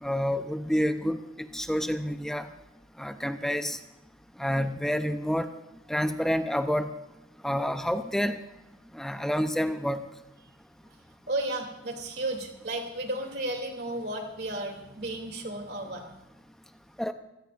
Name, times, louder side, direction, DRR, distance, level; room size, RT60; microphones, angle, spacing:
voice 1, 0.0-2.5 3.0-3.8 4.4-5.5 5.9-6.9 7.4-8.4 8.9-10.0 17.0-17.1, equal, ahead, 8 dB, 0.6 m, -28 dB
voice 2, 11.3-16.1, right 1 dB, 55° right, 3 dB, 2.9 m, -33 dB
25.5 x 17.5 x 2.5 m, 0.92 s
head